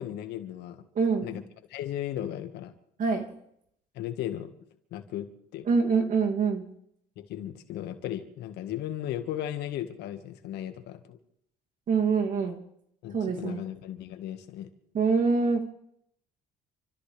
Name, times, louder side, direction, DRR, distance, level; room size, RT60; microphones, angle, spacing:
voice 1, 0.0-0.8 1.2-1.4 1.7-2.7 3.9-4.5 4.9-5.3 5.5-5.7 7.2-11.2 13.0-14.7, left 11 dB, 80° left, 7 dB, 1.8 m, -36 dB
voice 2, 0.9-1.3 3.0-3.2 5.7-6.6 11.9-12.6 13.1-13.6 14.9-15.6, right 5 dB, 50° right, 2 dB, 2.9 m, -25 dB
29.0 x 13.5 x 3.5 m, 0.72 s
cardioid pair, 110°, 17 cm